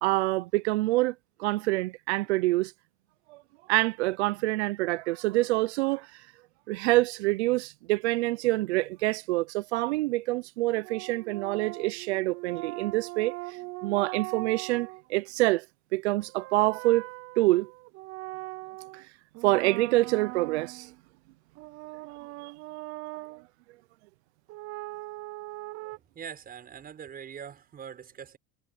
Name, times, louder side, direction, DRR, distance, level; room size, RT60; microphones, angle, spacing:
voice 1, 0.0-1.1 1.4-2.7 3.3-3.4 3.7-6.3 6.7-15.7 15.9-17.1 17.4-17.7 18.9-19.0 19.4-20.9 22.4-22.5, right 20 dB, 80° right, 0.7 m, -26 dB
sound 1, 10.8-15.0 16.1-19.0 19.3-21.0 21.6-23.4 24.5-26.0, right 22 dB, 45° right, 0.6 m, -41 dB
voice 2, 25.9-28.4, right 8 dB, 25° right, 5.9 m, -43 dB
supercardioid pair, 130°, 33 cm